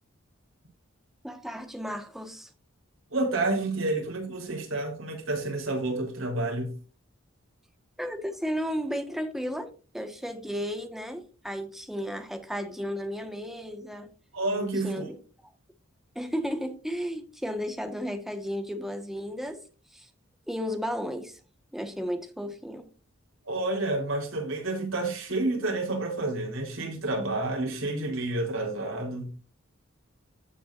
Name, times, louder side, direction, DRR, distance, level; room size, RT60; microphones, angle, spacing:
voice 1, 1.2-2.5 8.0-9.7 9.9-14.1 14.8-15.5 16.1-19.6 19.9-20.1 20.5-21.4 21.7-22.8, equal, ahead, 1.4 m, -34 dB
voice 2, 3.1-6.7 14.3-15.1 23.5-29.3, right 2 dB, 80° right, 4.0 m, -29 dB
17.0 x 6.0 x 2.5 m
head